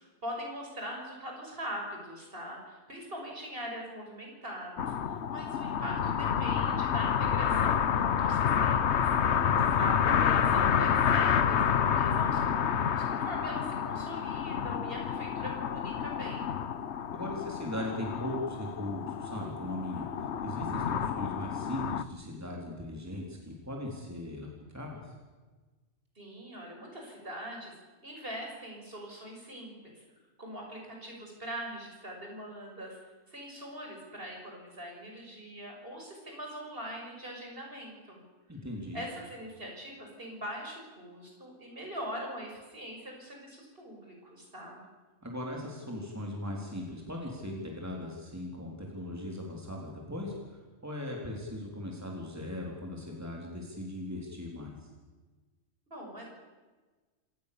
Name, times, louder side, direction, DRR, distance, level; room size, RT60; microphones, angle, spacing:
voice 1, 0.0-9.1 9.8-16.5 26.2-27.7 28.0-30.0 30.4-33.0 33.3-38.2 38.9-44.8 55.9-56.3, equal, 50° right, 0 dB, 6.2 m, -42 dB
sound 1, 4.8-22.0, left 8 dB, 65° left, 1.1 m, -29 dB
voice 2, 9.4-10.2 17.1-25.1 38.5-39.0 45.2-50.3 50.8-54.8, left 1 dB, 15° right, -1 dB, 3.9 m, -39 dB
27.5 x 18.5 x 7.0 m, 1.3 s
omnidirectional pair, 1.3 m